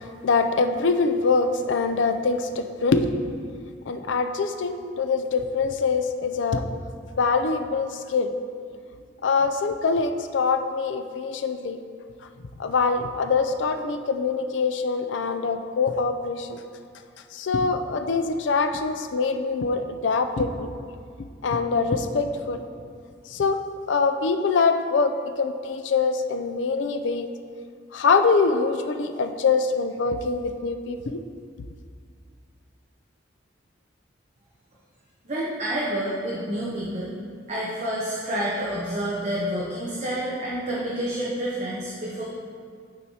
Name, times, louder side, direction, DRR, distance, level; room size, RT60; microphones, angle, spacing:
voice 1, 0.2-3.2 3.9-6.6 7.2-8.3 9.2-11.8 12.6-16.6 17.3-20.7 21.4-22.7 23.3-23.6 23.9-27.3 27.9-31.2, left 4 dB, 75° left, 7 dB, 0.4 m, -24 dB
voice 2, 35.2-37.1 37.5-42.2, right 1 dB, 40° right, -6 dB, 0.9 m, -28 dB
11.5 x 4.6 x 2.8 m, 2.1 s
head